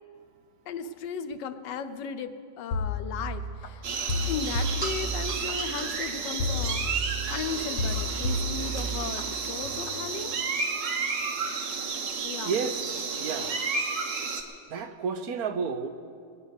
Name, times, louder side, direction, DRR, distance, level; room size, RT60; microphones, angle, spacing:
voice 1, 0.7-3.9 4.3-10.3 12.2-12.6, left 7 dB, 85° left, 9 dB, 1.4 m, -36 dB
sound 1, 2.7-3.7 4.1-5.5 6.4-7.4 7.8-9.2 9.6-10.0, left 1 dB, 60° left, 1.1 m, -31 dB
sound 2, 3.2-8.7, right 2 dB, 15° right, 1.0 m, -45 dB
sound 3, 3.8-14.4, right 5 dB, 85° right, 1.8 m, -32 dB
voice 2, 12.4-13.7 14.7-15.9, right 5 dB, 65° right, 8 dB, 1.2 m, -32 dB
22.0 x 8.9 x 6.5 m, 2.3 s
omnidirectional pair, 1.9 m